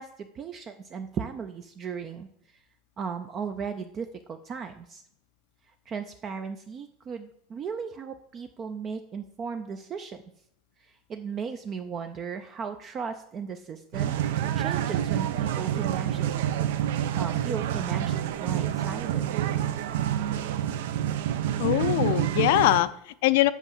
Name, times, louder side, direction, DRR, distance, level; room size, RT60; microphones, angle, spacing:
voice 1, 0.0-2.3 3.0-5.0 5.9-10.2 10.8-16.5 17.1-19.6, right 6 dB, 20° right, 8 dB, 0.4 m, -36 dB
sound 1, 13.9-22.8, right 11 dB, 75° right, 0.7 m, -28 dB
voice 2, 21.6-23.5, left 15 dB, 60° left, 15 dB, 0.5 m, -22 dB
8.1 x 6.0 x 7.1 m, 0.71 s
supercardioid pair, 180°, 0 cm